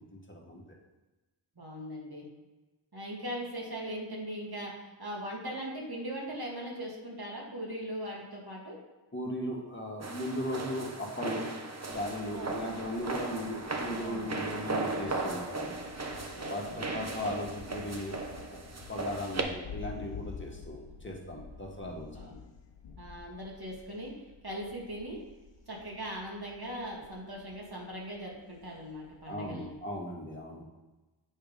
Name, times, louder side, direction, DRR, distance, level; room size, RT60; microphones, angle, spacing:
voice 1, 0.1-0.6 9.1-11.5 11.9-15.8 16.5-18.2 18.9-22.1 29.2-30.7, left 1 dB, 25° left, -1 dB, 1.7 m, -37 dB
voice 2, 1.6-2.3 2.9-8.8 12.2-12.6 14.0-14.4 16.3-17.2 22.2-22.4 23.0-24.1 24.4-25.2 25.7-29.7, equal, 50° right, -3 dB, 2.1 m, -40 dB
sound 1, 10.0-19.4, right 3 dB, 30° right, 0.9 m, -37 dB
Thunder, 12.3-30.0, left 6 dB, 60° left, 0.8 m, -50 dB
8.6 x 3.5 x 5.2 m, 1.1 s
cardioid pair, 45°, 49 cm